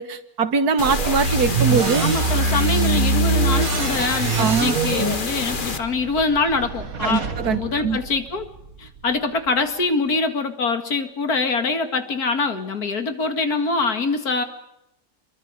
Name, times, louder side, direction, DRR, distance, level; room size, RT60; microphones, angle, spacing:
voice 1, 0.0-2.0 4.4-4.8 7.0-8.0, right 5 dB, 80° right, 11 dB, 1.9 m, -22 dB
sound 1, 0.8-5.8, left 4 dB, 35° left, 1.4 m, -28 dB
sound 2, 0.8-8.7, right 4 dB, 65° right, 1.9 m, -24 dB
voice 2, 2.0-8.5 8.8-14.4, left 3 dB, 75° left, 7 dB, 2.6 m, -24 dB
27.5 x 23.0 x 5.1 m, 0.83 s
omnidirectional pair, 1.6 m